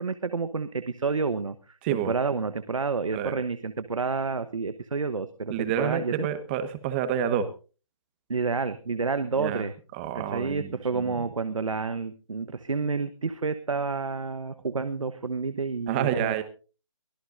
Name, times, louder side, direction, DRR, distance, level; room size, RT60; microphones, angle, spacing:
voice 1, 0.0-6.3 8.3-9.7 10.1-16.4, right 4 dB, 75° right, 11 dB, 1.2 m, -29 dB
voice 2, 1.8-2.1 3.1-3.4 5.5-7.5 9.4-9.6 9.9-11.2 15.9-16.4, right 9 dB, 20° right, 11 dB, 1.4 m, -29 dB
23.5 x 16.0 x 2.6 m, 0.36 s
figure-of-eight pair, 155°, 17 cm